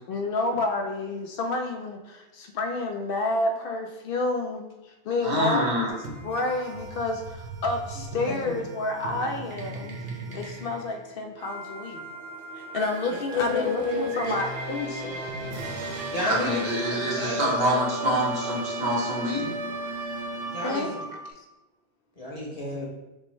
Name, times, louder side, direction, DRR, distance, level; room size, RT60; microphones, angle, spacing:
voice 1, 0.1-10.0 10.3-12.1 12.6-15.6 20.6-20.9, left 2 dB, 65° left, 3 dB, 0.7 m, -30 dB
voice 2, 5.2-5.9 16.3-19.5, equal, 80° right, -3 dB, 1.4 m, -26 dB
sound 1, 5.9-21.3, right 2 dB, 65° right, 0.9 m, -36 dB
voice 3, 13.3-14.3 16.1-16.6 17.2-17.4 20.5-20.9 22.2-22.9, left 3 dB, 35° left, -4 dB, 1.3 m, -29 dB
5.3 x 2.1 x 4.6 m, 1.0 s
omnidirectional pair, 1.1 m